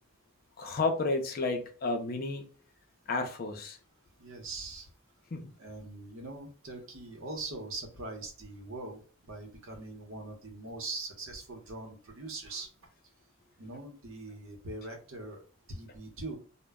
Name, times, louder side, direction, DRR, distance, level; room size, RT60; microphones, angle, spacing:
voice 1, 0.6-2.4 3.1-3.8 5.3-5.5, left 3 dB, 45° left, 0.5 m, -31 dB
voice 2, 4.2-4.9 5.6-12.7 13.6-15.4 15.7-16.4, right 2 dB, 65° right, 0.8 m, -42 dB
2.1 x 2.1 x 3.4 m
head